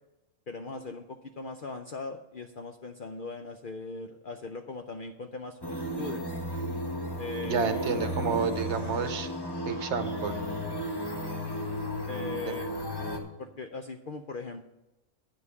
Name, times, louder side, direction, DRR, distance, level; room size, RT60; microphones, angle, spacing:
voice 1, 0.5-6.2 7.2-7.8 12.1-12.7 13.4-14.7, left 3 dB, 55° left, 5 dB, 0.6 m, -39 dB
sound 1, 5.6-13.2, equal, 20° left, 1.1 m, -34 dB
voice 2, 7.4-9.3 9.7-10.4 12.5-12.6, right 6 dB, 60° right, 9 dB, 1.0 m, -30 dB
9.6 x 5.3 x 8.1 m, 0.98 s
omnidirectional pair, 1.4 m